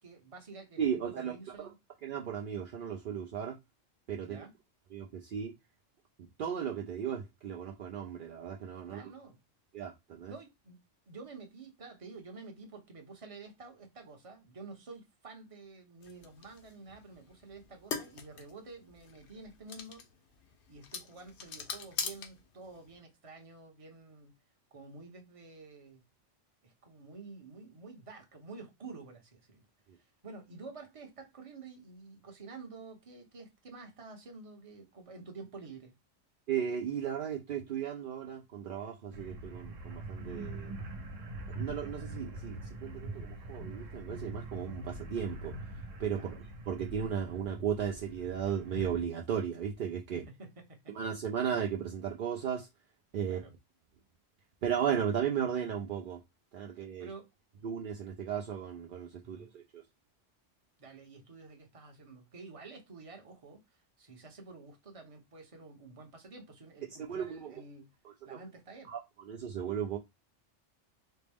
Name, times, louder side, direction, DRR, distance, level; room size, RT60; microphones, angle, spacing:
voice 1, 0.0-1.8 4.2-4.5 8.9-9.4 10.3-10.8 11.1-20.0 20.7-24.4 24.7-26.0 26.6-29.6 29.9-36.0 46.2-46.4 50.1-51.0 53.3-53.5 57.0-57.3 59.2-59.5 60.8-68.0 68.2-68.9, right 3 dB, 30° right, 0.8 m, -50 dB
voice 2, 0.8-1.3 2.0-3.6 4.1-4.4 4.9-5.5 6.4-9.1 9.7-10.3 36.5-40.7 41.6-45.5 46.0-46.3 46.7-50.2 50.9-52.7 53.1-53.4 54.6-56.2 56.5-57.1 57.6-59.8 67.0-67.5 68.9-70.0, right 8 dB, 60° right, 0.5 m, -35 dB
sound 1, 16.0-23.0, left 6 dB, 65° left, 0.9 m, -43 dB
sound 2, 39.1-49.0, right 2 dB, 80° right, 1.2 m, -43 dB
4.2 x 2.0 x 3.4 m
omnidirectional pair, 1.3 m